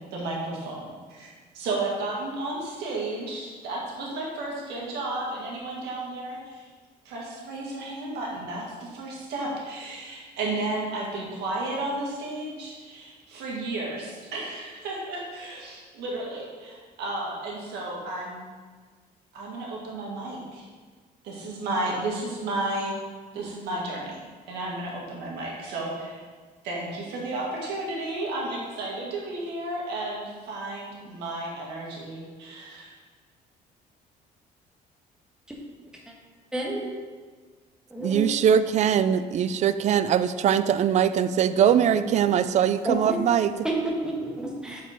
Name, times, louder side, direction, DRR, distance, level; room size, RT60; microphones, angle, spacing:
voice 1, 0.1-6.7 7.1-18.5 19.3-20.6 21.2-22.9 23.3-26.2 26.6-32.9, right 2 dB, 85° right, -3 dB, 1.9 m, -33 dB
voice 2, 36.5-37.0 37.9-38.2 41.5-41.6 42.0-42.5 42.8-43.2 43.6-44.8, right 1 dB, 5° right, -2 dB, 1.4 m, -30 dB
voice 3, 38.0-43.5, right 8 dB, 45° right, 13 dB, 0.4 m, -22 dB
6.8 x 4.7 x 4.3 m, 1.5 s
cardioid pair, 110°, 17 cm